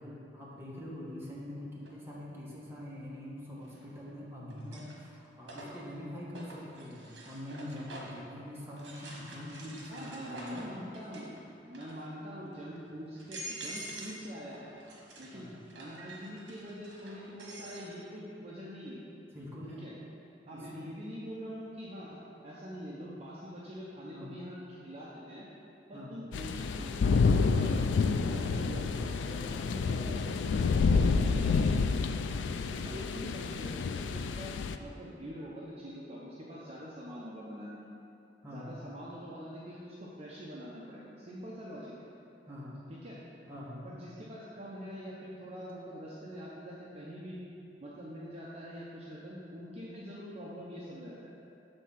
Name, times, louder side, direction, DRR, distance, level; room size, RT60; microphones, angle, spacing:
voice 1, 0.0-10.7 15.3-15.5 19.3-19.8 20.5-20.8 24.1-24.3 25.9-26.2 32.8-33.0 38.4-38.8 42.5-42.8 43.5-43.9, left 1 dB, 15° right, -6 dB, 1.2 m, -44 dB
sound 1, 1.8-1.9 3.6-4.1 4.5-8.3 8.8-11.4 11.7-12.2 12.7-12.8 13.2-14.2 14.5-17.9, right 1 dB, 80° right, 1.2 m, -47 dB
voice 2, 9.9-11.4 11.6-14.7 15.2-19.0 19.8-19.9 20.5-22.2 22.4-25.4 25.9-31.9 32.7-38.0 38.5-42.1 42.9-43.2 43.8-47.4 47.8-51.3, equal, 35° right, -6 dB, 0.7 m, -44 dB
sound 2, 26.3-34.8, left 4 dB, 80° left, 0.3 m, -29 dB
7.6 x 3.6 x 5.7 m, 2.7 s
head